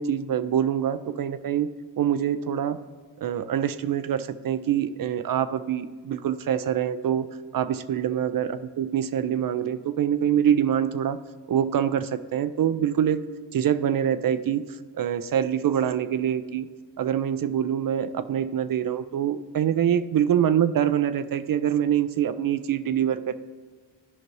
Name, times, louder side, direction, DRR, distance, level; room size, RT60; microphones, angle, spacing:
voice 1, 0.0-1.7 2.0-2.8 3.2-7.3 7.5-11.2 11.5-13.2 13.5-14.6 14.9-16.7 17.0-23.4, right 9 dB, 50° right, 12 dB, 0.5 m, -25 dB
12.0 x 5.1 x 3.2 m, 1.5 s
cardioid pair, 60°, 43 cm